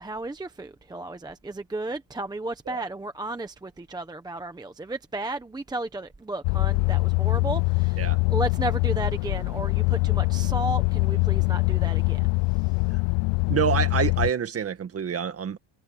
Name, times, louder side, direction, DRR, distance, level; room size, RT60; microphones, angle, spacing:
voice 1, 0.0-12.8, right 2 dB, 10° right, 0.9 m, -34 dB
sound 1, 6.4-14.3, left 28 dB, 65° left, 0.5 m, -23 dB
voice 2, 13.4-15.6, right 8 dB, 30° right, 1.8 m, -27 dB
cardioid pair, 160°, 50 cm